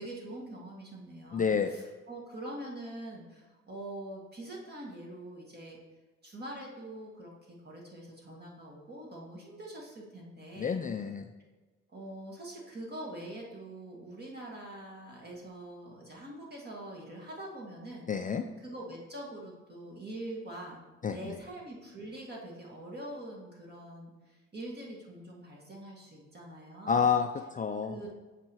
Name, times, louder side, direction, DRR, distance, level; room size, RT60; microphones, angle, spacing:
voice 1, 0.0-5.8 6.2-10.8 11.9-18.1 18.6-20.8 21.1-27.1 27.8-28.1, right 1 dB, 35° right, -2 dB, 1.9 m, -44 dB
voice 2, 1.3-1.7 10.6-11.2 18.1-18.4 21.0-21.4 26.9-28.1, left 6 dB, 30° left, 7 dB, 0.4 m, -29 dB
7.7 x 5.7 x 3.0 m, 1.3 s
cardioid pair, 90°, 30 cm